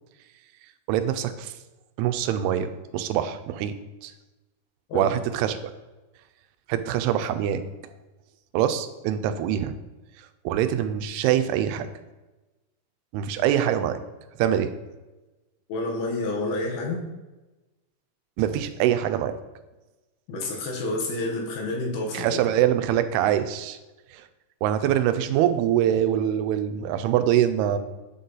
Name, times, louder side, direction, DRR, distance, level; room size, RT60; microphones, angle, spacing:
voice 1, 0.9-1.5 2.0-3.8 4.0-4.1 4.9-5.6 6.7-7.6 8.5-9.7 10.5-11.9 13.1-14.0 14.4-14.7 18.4-19.3 22.1-23.8 24.1-24.2 24.6-27.8, right 10 dB, 90° right, 10 dB, 2.5 m, -24 dB
voice 2, 15.7-17.0 20.3-22.4, left 2 dB, 75° left, -1 dB, 3.0 m, -29 dB
8.3 x 4.0 x 3.8 m, 1.1 s
omnidirectional pair, 4.5 m